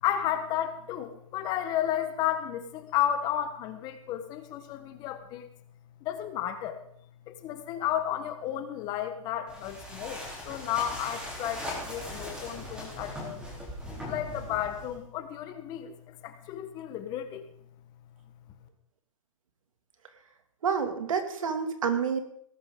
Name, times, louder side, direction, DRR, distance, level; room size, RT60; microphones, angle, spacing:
voice 1, 0.0-5.5 6.0-6.8 7.3-13.4 14.0-17.5, left 11 dB, 25° left, 9 dB, 1.2 m, -32 dB
sound 1, 9.5-15.0, left 1 dB, 5° right, 3.4 m, -39 dB
voice 2, 20.6-22.2, right 6 dB, 75° right, 7 dB, 2.3 m, -28 dB
18.5 x 12.0 x 3.8 m, 0.67 s
hypercardioid pair, 150°, 17 cm